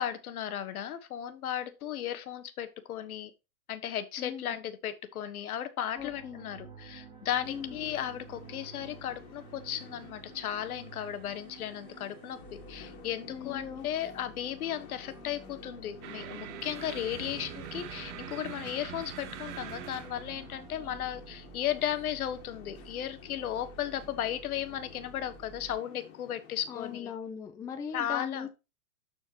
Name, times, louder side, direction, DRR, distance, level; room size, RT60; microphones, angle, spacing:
voice 1, 0.0-3.3 3.7-12.4 12.7-27.1 27.9-28.5, left 10 dB, 70° left, 1.3 m, -35 dB
voice 2, 4.2-4.6 6.0-6.4 7.4-7.8 13.3-13.9 26.7-28.5, left 7 dB, 10° left, 0.5 m, -39 dB
sound 1, 6.0-25.8, right 3 dB, 10° right, 2.4 m, -51 dB
sound 2, 7.4-27.0, left 9 dB, 45° left, 2.0 m, -53 dB
sound 3, 16.0-22.5, right 11 dB, 50° right, 1.1 m, -44 dB
12.5 x 4.4 x 2.9 m
hypercardioid pair, 130°, 45 cm